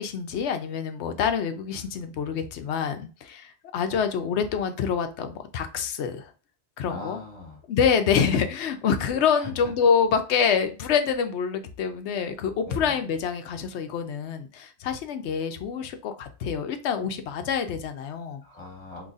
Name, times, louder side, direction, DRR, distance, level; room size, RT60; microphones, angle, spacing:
voice 1, 0.0-6.3 6.8-7.2 7.7-18.4, left 7 dB, 80° left, 8 dB, 0.9 m, -26 dB
voice 2, 6.9-7.6 9.3-9.5 12.7-13.0 15.3-15.4 18.4-19.1, left 2 dB, 35° left, 0 dB, 1.2 m, -40 dB
3.9 x 3.0 x 2.4 m, 0.35 s
omnidirectional pair, 1.1 m